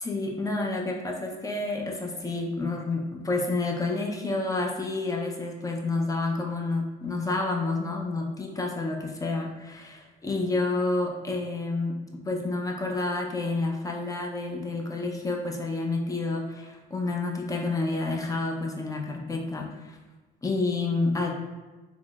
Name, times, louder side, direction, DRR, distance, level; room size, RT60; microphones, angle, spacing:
voice 1, 0.0-12.0 12.2-20.0 20.4-21.3, left 3 dB, 15° left, 0 dB, 0.6 m, -29 dB
3.8 x 3.0 x 2.3 m, 1.2 s
supercardioid pair, 90°, 20 cm